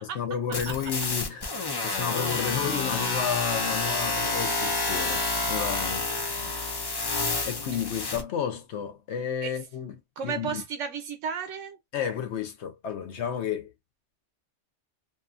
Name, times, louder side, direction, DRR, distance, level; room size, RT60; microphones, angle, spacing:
voice 1, 0.1-1.5 1.8-6.1 7.4-10.6 11.9-13.7, left 8 dB, 70° left, 1.0 m, -32 dB
sound 1, 0.5-8.2, left 3 dB, 40° left, 0.3 m, -29 dB
voice 2, 5.9-6.5 7.7-7.8 9.4-9.6 10.2-11.8, right 6 dB, 90° right, 1.1 m, -35 dB
2.6 x 2.5 x 2.4 m
omnidirectional pair, 1.2 m